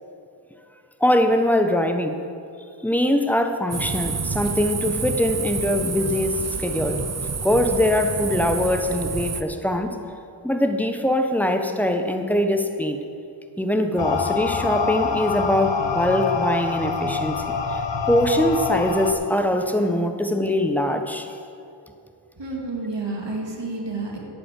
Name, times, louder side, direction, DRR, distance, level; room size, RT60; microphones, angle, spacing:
voice 1, 1.0-2.2 2.8-7.0 7.4-10.0 10.4-13.0 13.6-17.8 18.1-21.3, left 1 dB, 5° left, 5 dB, 1.2 m, -22 dB
sound 1, 3.7-9.4, right 4 dB, 35° right, 0.8 m, -29 dB
sound 2, 14.0-19.1, left 5 dB, 70° left, 1.0 m, -26 dB
voice 2, 22.4-24.2, right 3 dB, 70° right, -1 dB, 2.4 m, -30 dB
11.0 x 8.6 x 7.7 m, 2.5 s
cardioid pair, 45°, 44 cm